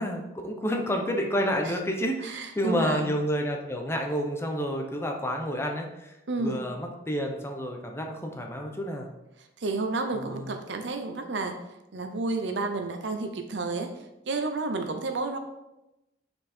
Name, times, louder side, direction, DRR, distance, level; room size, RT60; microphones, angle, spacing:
voice 1, 0.0-9.1 10.2-10.6, equal, 15° left, 2 dB, 0.8 m, -30 dB
voice 2, 2.2-3.1 6.3-6.6 9.6-11.6 11.9-13.9 14.3-15.4, right 3 dB, 65° right, 6 dB, 0.7 m, -31 dB
6.1 x 4.5 x 4.3 m, 0.93 s
head